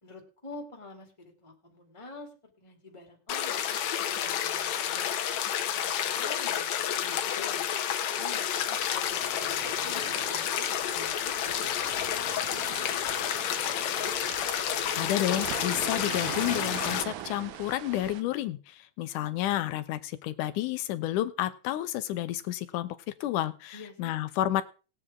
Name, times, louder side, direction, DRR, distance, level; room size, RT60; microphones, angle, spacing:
voice 1, 0.0-2.3 2.6-14.1 23.7-24.1, left 3 dB, 10° left, 2 dB, 2.2 m, -48 dB
sound 1, 3.3-17.0, left 9 dB, 70° left, 2.0 m, -30 dB
sound 2, 8.7-18.2, right 11 dB, 80° right, 2.3 m, -42 dB
voice 2, 14.8-24.6, left 13 dB, 85° left, 11 dB, 2.2 m, -31 dB
19.5 x 7.9 x 3.6 m, 0.34 s
omnidirectional pair, 3.6 m